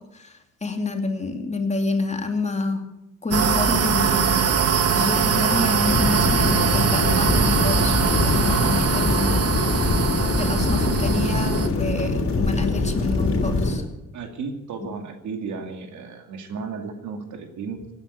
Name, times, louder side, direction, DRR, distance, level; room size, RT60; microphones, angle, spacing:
voice 1, 0.1-2.8 3.2-4.6 4.9-9.6 10.0-13.8, left 3 dB, 25° left, 4 dB, 2.6 m, -28 dB
sound 1, 3.3-11.7, right 6 dB, 50° right, 1.6 m, -22 dB
sound 2, 5.9-13.8, left 3 dB, 50° left, 3.5 m, -23 dB
voice 2, 14.1-17.9, right 5 dB, 70° right, 5 dB, 2.5 m, -34 dB
17.5 x 9.8 x 8.5 m, 0.93 s
cardioid pair, 90°, 30 cm